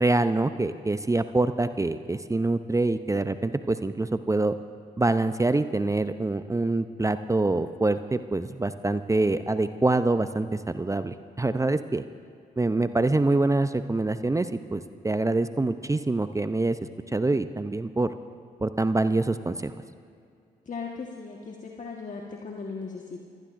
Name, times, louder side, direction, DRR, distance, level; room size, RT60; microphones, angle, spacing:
voice 1, 0.0-4.5 5.0-12.0 12.6-16.8 17.1-18.1 18.6-19.7, right 2 dB, 15° right, 11 dB, 0.7 m, -25 dB
voice 2, 20.7-23.2, left 4 dB, 40° left, -1 dB, 1.5 m, -37 dB
26.5 x 17.0 x 2.6 m, 2.3 s
hypercardioid pair, 40°, 19 cm